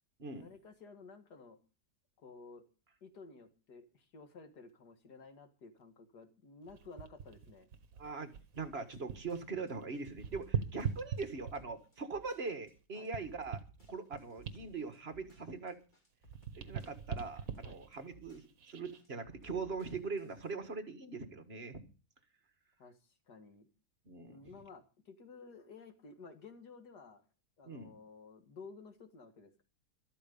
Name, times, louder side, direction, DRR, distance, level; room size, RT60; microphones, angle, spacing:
voice 1, 0.4-1.6 2.2-2.6 3.0-7.7 13.0-13.1 17.6-17.8 22.8-23.7 24.3-27.2 27.6-29.6, left 4 dB, 75° left, 7 dB, 2.4 m, -54 dB
sound 1, 6.7-9.4 9.7-11.8 12.4-15.9 16.2-19.0 19.6-19.8, right 7 dB, 55° right, 1.7 m, -42 dB
voice 2, 8.0-13.6 13.9-15.8 16.5-21.8 24.1-24.5 27.6-27.9, right 4 dB, 40° right, 8 dB, 1.7 m, -42 dB
sound 2, 8.5-20.5, right 3 dB, 25° left, 3.2 m, -61 dB
13.0 x 13.0 x 5.3 m, 0.35 s
omnidirectional pair, 1.8 m